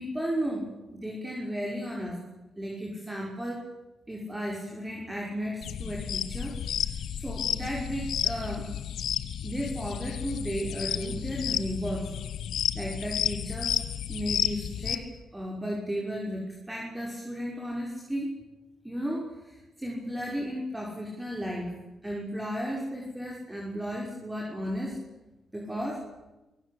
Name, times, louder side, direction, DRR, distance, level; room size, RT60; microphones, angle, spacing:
voice 1, 0.0-2.2 2.6-3.7 4.1-8.7 9.4-12.1 12.7-13.8 14.1-18.3 18.8-21.7 22.0-25.0 25.5-26.0, equal, 15° right, -2 dB, 6.0 m, -34 dB
sound 1, 5.6-15.0, left 9 dB, 70° left, 1.3 m, -32 dB
24.5 x 17.0 x 8.8 m, 1.0 s
hypercardioid pair, 45°, 0 cm